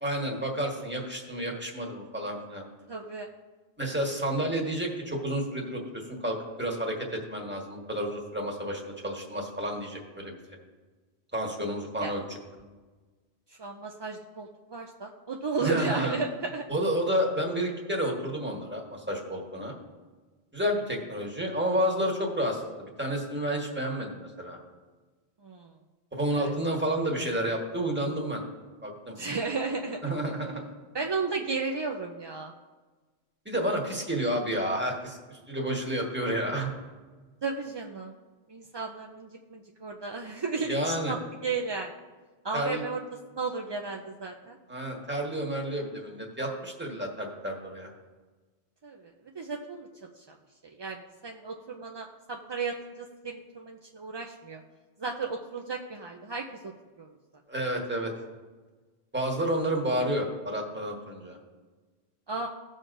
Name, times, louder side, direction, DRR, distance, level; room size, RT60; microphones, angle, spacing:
voice 1, 0.0-2.7 3.8-10.3 11.3-12.2 15.6-16.2 16.7-19.7 20.5-24.6 26.1-28.4 28.8-29.1 30.0-30.6 33.4-36.7 40.7-41.1 42.5-42.8 44.7-47.9 57.5-58.1 59.1-61.4, right 1 dB, 10° right, -1 dB, 1.4 m, -30 dB
voice 2, 2.9-3.3 12.0-12.1 13.5-16.6 25.4-25.7 26.4-26.5 29.2-30.0 30.9-32.5 37.4-38.1 38.5-41.9 42.4-43.0 43.3-44.6 48.8-49.9 50.2-50.4 50.6-54.6 55.0-57.1 62.3-62.5, right 4 dB, 40° right, 1 dB, 0.3 m, -34 dB
16.5 x 6.5 x 2.6 m, 1.3 s
omnidirectional pair, 1.1 m